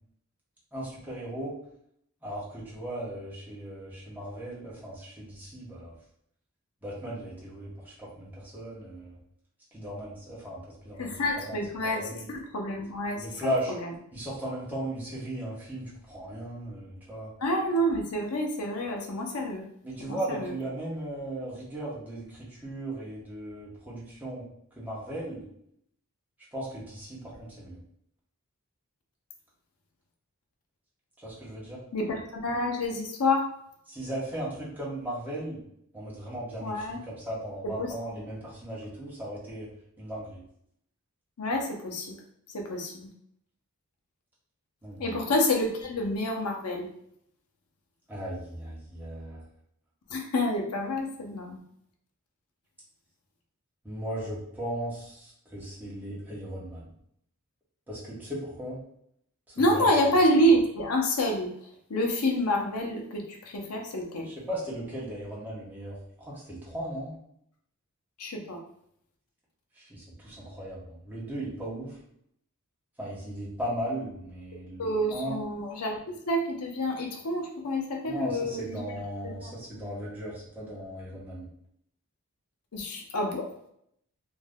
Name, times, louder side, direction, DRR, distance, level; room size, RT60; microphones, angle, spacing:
voice 1, 0.7-1.5 2.2-6.0 6.8-9.1 9.7-12.3 13.2-13.7 14.1-17.3 19.8-24.5 24.8-25.4 26.5-27.8 31.2-31.8 33.9-35.6 35.9-39.7 40.0-40.4 44.8-45.2 48.1-49.4 53.8-56.8 57.9-58.8 59.5-60.1 64.2-67.1 69.8-72.0 73.0-75.4 78.0-81.5, right 1 dB, 10° right, -7 dB, 0.9 m, -37 dB
voice 2, 11.0-12.0 12.3-13.2 17.4-19.6 20.0-20.2 20.4-20.5 31.9-33.4 36.6-37.0 37.8-37.9 41.4-42.1 42.5-42.9 45.0-46.9 50.1-51.6 59.6-61.5 61.9-64.3 68.2-68.6 74.8-76.0 76.3-78.8 79.2-79.5 82.7-83.4, equal, 85° left, 1 dB, 0.6 m, -28 dB
2.5 x 2.1 x 3.4 m, 0.72 s
head